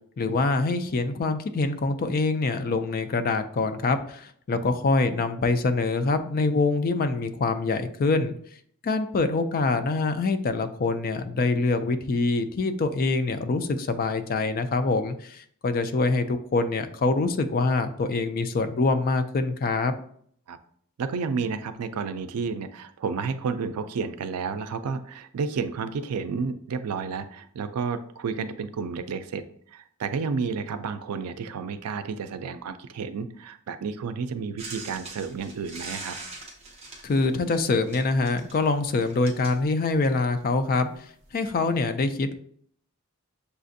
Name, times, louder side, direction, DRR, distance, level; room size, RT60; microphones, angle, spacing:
voice 1, 0.2-8.3 8.8-19.9 37.0-40.9 41.3-42.4, left 3 dB, 40° left, 9 dB, 0.3 m, -25 dB
voice 2, 21.0-36.2, right 5 dB, 80° right, 10 dB, 0.4 m, -31 dB
sound 1, 34.6-40.3 41.2-41.3, right 3 dB, 30° right, 0.8 m, -42 dB
6.7 x 2.5 x 2.6 m, 0.62 s
head